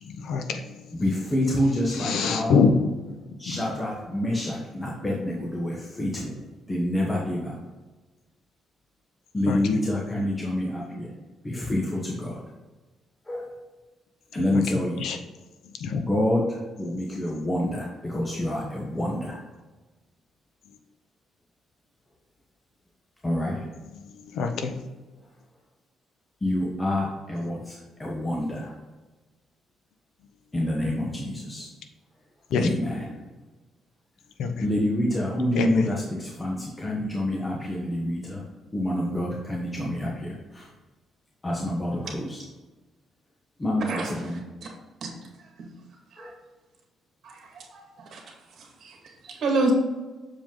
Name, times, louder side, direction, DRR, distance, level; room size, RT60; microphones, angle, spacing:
voice 1, 0.0-0.8 1.9-2.9 3.5-3.6 9.5-9.6 14.5-14.6 15.0-15.2 15.8-16.0 17.4-17.5 23.9-24.8 32.5-32.7 34.4-34.7 35.5-35.9, left 5 dB, 75° left, 6 dB, 0.8 m, -25 dB
voice 2, 0.9-2.5 3.4-6.3 6.7-7.6 9.3-11.1 11.4-12.4 13.3-13.5 14.3-15.1 15.9-19.4 23.2-23.7 26.4-28.7 30.5-31.7 32.6-33.0 34.6-38.4 38.7-40.7 41.4-42.4 43.6-44.4 46.2-46.3, left 1 dB, 15° left, -3 dB, 1.1 m, -27 dB
voice 3, 47.2-48.2 48.6-49.0 49.2-49.7, right 3 dB, 60° right, 1 dB, 1.9 m, -29 dB
6.9 x 5.0 x 3.8 m, 1.2 s
cardioid pair, 120°, 0 cm